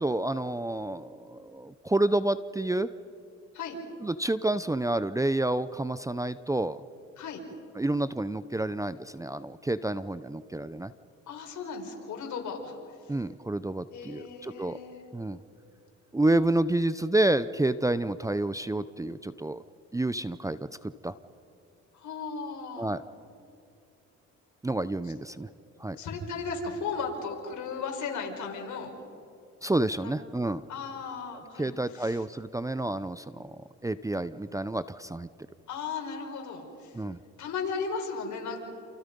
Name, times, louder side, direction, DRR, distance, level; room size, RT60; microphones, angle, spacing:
voice 1, 0.0-2.9 4.0-6.8 7.8-10.9 13.1-14.8 15.1-15.4 16.1-19.6 19.9-20.6 21.0-21.1 22.8-23.0 24.6-25.5 25.8-26.0 29.6-30.6 31.6-33.5 33.8-35.3 36.9-37.2, right 2 dB, 10° right, 15 dB, 0.6 m, -29 dB
voice 2, 11.3-13.1 13.9-15.0 21.9-22.9 26.0-28.9 30.0-30.1 30.7-32.2 35.7-37.0 37.4-38.6, left 5 dB, 75° left, 2 dB, 5.1 m, -36 dB
29.0 x 29.0 x 5.4 m, 2.6 s
cardioid pair, 90°, 30 cm